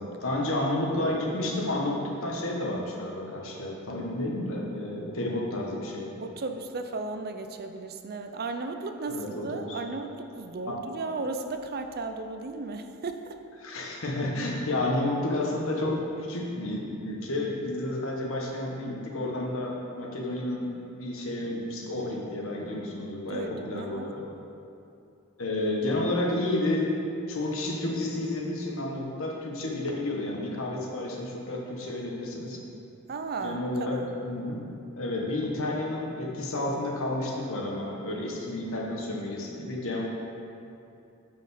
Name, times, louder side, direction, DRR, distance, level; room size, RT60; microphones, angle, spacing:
voice 1, 0.0-6.1 9.1-9.8 13.6-24.2 25.4-26.9 27.3-32.6 33.4-34.7 35.0-40.0, left 1 dB, 65° left, -1 dB, 1.4 m, -31 dB
voice 2, 6.2-13.4 23.3-24.1 33.1-34.1, right 3 dB, 45° right, 7 dB, 0.5 m, -35 dB
9.4 x 5.2 x 5.7 m, 2.7 s
head